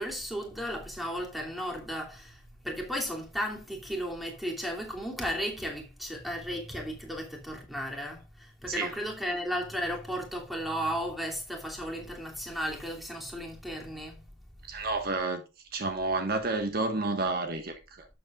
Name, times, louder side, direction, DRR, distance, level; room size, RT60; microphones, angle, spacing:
voice 1, 0.0-2.4 2.6-14.1, equal, ahead, 2.8 m, -34 dB
voice 2, 14.7-15.4 15.7-18.1, right 3 dB, 50° right, 1.6 m, -30 dB
12.0 x 7.7 x 2.5 m
head